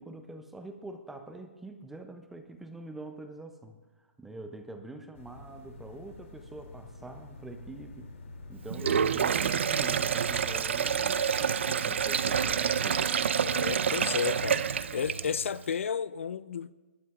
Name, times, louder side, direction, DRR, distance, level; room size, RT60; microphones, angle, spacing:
voice 1, 0.0-8.1 8.5-13.5, right 2 dB, 5° right, 0.5 m, -45 dB
sound 1, 5.1-10.6, left 2 dB, 90° left, 2.7 m, -47 dB
Sink (filling or washing), 8.7-15.5, right 7 dB, 60° right, 0.5 m, -28 dB
voice 2, 13.5-14.7 14.9-16.8, left 7 dB, 70° left, 0.5 m, -32 dB
22.5 x 12.0 x 2.4 m
hypercardioid pair, 170°, 7 cm